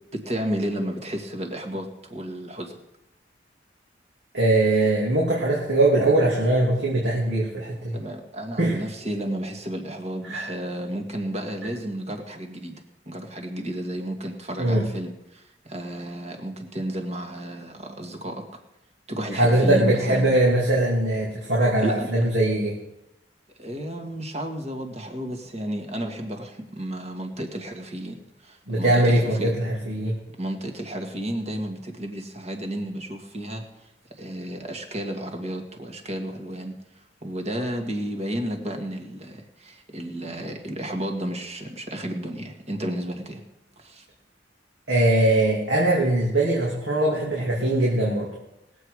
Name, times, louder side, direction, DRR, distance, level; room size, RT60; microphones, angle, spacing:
voice 1, 0.1-2.7 7.9-18.4 19.1-20.3 21.8-22.1 23.6-29.5 30.3-33.7 34.2-36.8 37.2-43.4 43.8-44.1, right 1 dB, 40° right, 3 dB, 1.9 m, -32 dB
voice 2, 4.3-8.0 8.6-8.8 10.2-10.5 14.6-14.9 19.3-22.7 28.7-30.1 44.9-48.3, right 1 dB, 85° right, -4 dB, 2.8 m, -21 dB
20.0 x 7.9 x 4.9 m, 0.90 s
head